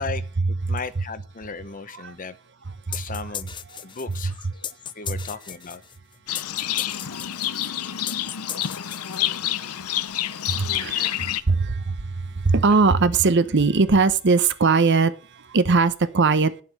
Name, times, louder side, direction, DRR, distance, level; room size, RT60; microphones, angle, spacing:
voice 1, 0.0-2.4 2.9-3.5 3.8-4.4 4.9-5.8, left 4 dB, 40° left, 0.8 m, -35 dB
sound 1, 2.9-9.6, left 9 dB, 20° left, 0.4 m, -37 dB
Livestock farm animals working animals, 6.3-11.4, left 12 dB, 90° left, 0.6 m, -28 dB
voice 2, 7.1-7.8 10.5-16.6, right 4 dB, 50° right, 0.8 m, -21 dB
9.4 x 7.5 x 6.5 m
head